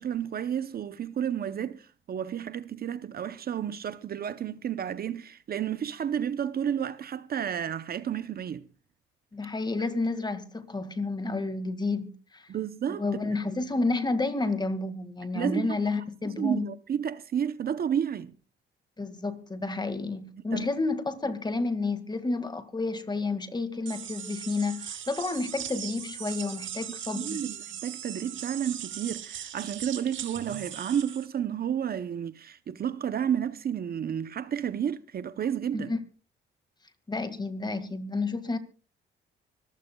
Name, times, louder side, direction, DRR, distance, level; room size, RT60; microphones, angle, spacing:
voice 1, 0.0-8.7 12.5-13.0 15.3-15.8 16.2-18.3 20.5-20.7 27.1-27.6 27.8-35.9, right 9 dB, 50° right, 0.7 m, -31 dB
voice 2, 9.3-12.5 12.9-16.7 19.0-27.4 35.7-36.0 37.1-38.6, left 3 dB, 20° left, 1.9 m, -30 dB
sound 1, 23.9-31.3, right 10 dB, 75° right, 1.9 m, -39 dB
25.0 x 15.0 x 2.3 m
cardioid pair, 90°, 20 cm